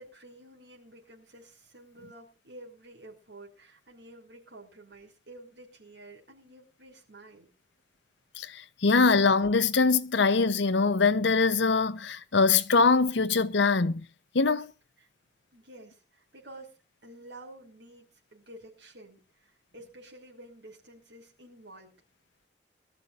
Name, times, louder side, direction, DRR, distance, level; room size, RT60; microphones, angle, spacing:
voice 1, 0.0-7.5 15.0-15.1 15.5-22.0, right 1 dB, 75° right, 5.5 m, -50 dB
voice 2, 8.4-14.0 14.3-14.7, left 4 dB, 80° left, 0.9 m, -23 dB
22.5 x 13.5 x 2.6 m
head